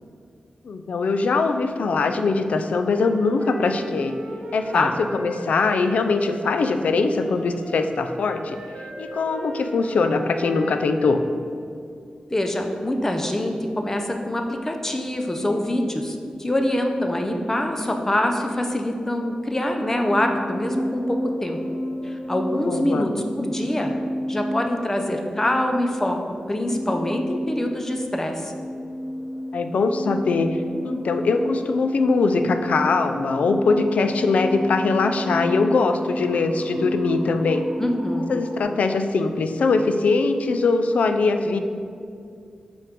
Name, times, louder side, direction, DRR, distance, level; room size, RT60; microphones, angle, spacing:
voice 1, 0.6-4.2 4.5-8.6 9.0-11.2 22.7-23.1 29.5-37.6 38.3-41.6, left 3 dB, 80° left, 8 dB, 0.4 m, -22 dB
Wind instrument woodwind instrument, 2.8-11.3, right 1 dB, 75° right, 0.9 m, -38 dB
voice 2, 12.3-21.6 22.0-23.9 24.3-26.2 26.5-28.5 37.8-38.3, left 1 dB, 20° left, 4 dB, 0.5 m, -25 dB
sound 1, 19.6-38.6, equal, 50° right, 1.3 m, -31 dB
5.4 x 3.6 x 5.2 m, 2.3 s
wide cardioid pair, 130°, 2 cm